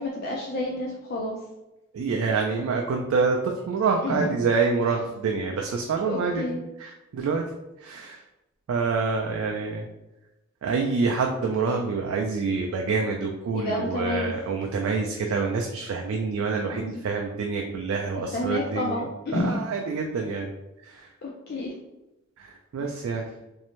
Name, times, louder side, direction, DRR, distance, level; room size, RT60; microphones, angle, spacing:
voice 1, 0.0-1.4 4.0-4.3 6.0-6.6 13.5-14.3 16.6-17.0 18.3-19.6 20.1-20.3 21.2-21.7, left 1 dB, 50° left, -3 dB, 0.4 m, -30 dB
voice 2, 1.9-7.4 7.8-8.2 8.7-9.9 10.6-19.0 19.3-20.5 20.8-21.1 22.4-23.3, right 4 dB, 85° right, 1 dB, 0.3 m, -27 dB
2.6 x 2.0 x 2.9 m, 0.97 s
head